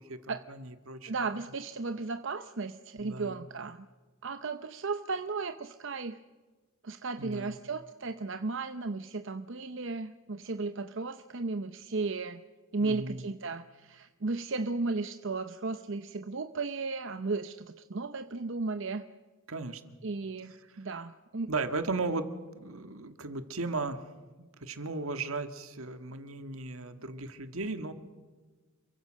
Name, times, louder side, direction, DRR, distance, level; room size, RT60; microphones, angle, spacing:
voice 1, 0.0-1.1 3.0-3.5 7.2-7.6 12.8-13.2 19.5-19.8 21.5-24.0 24.6-27.9, right 3 dB, 80° right, 9 dB, 1.9 m, -36 dB
voice 2, 1.1-3.9 4.2-6.2 6.8-12.4 12.7-19.0 20.0-21.5, right 3 dB, 60° right, 9 dB, 0.8 m, -35 dB
28.5 x 23.0 x 6.4 m, 1.3 s
head